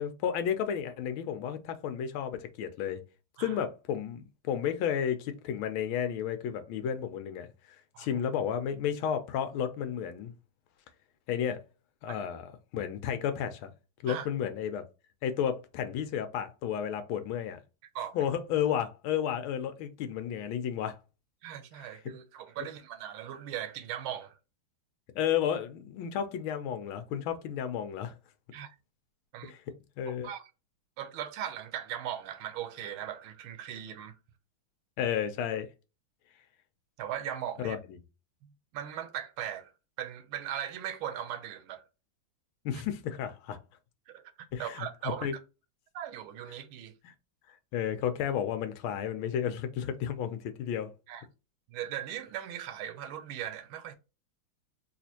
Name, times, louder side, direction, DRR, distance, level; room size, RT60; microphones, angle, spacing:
voice 1, 0.0-3.0 3.4-7.5 8.0-10.3 11.3-11.6 12.0-13.7 14.0-14.8 15.2-17.6 18.1-21.0 25.1-28.1 29.4-29.6 30.0-30.3 35.0-35.7 37.6-38.0 42.6-43.6 44.5-45.3 47.0-47.1 47.7-50.9, left 9 dB, 80° left, 1.4 m, -32 dB
voice 2, 21.4-24.4 28.5-28.7 29.3-29.5 30.1-30.4 31.0-34.2 37.0-37.8 38.7-39.7 40.0-41.8 42.7-42.8 44.1-45.3 45.9-46.9 51.1-51.2 51.7-54.0, right 10 dB, 80° right, 1.4 m, -39 dB
4.2 x 2.4 x 2.8 m
omnidirectional pair, 2.3 m